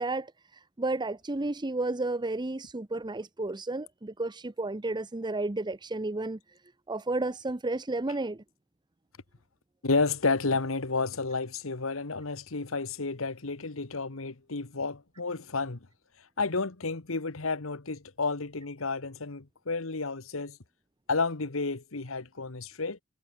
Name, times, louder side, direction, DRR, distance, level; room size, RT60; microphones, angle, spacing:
voice 1, 0.0-6.4 6.9-8.4, right 2 dB, 20° right, 0.8 m, -32 dB
voice 2, 9.8-15.8 16.4-20.6 21.1-23.0, left 3 dB, 75° left, 1.4 m, -31 dB
head